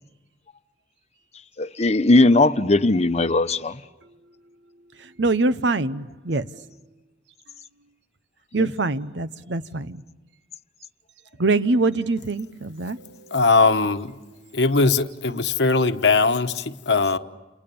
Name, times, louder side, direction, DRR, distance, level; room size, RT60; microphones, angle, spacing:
voice 1, 1.6-3.8, left 2 dB, 40° left, 0.9 m, -18 dB
voice 2, 5.0-6.7 8.5-10.0 11.4-13.3, right 3 dB, 85° right, 0.9 m, -24 dB
voice 3, 13.3-14.2 14.5-17.2, left 4 dB, 75° left, 1.1 m, -20 dB
29.5 x 28.5 x 7.0 m
head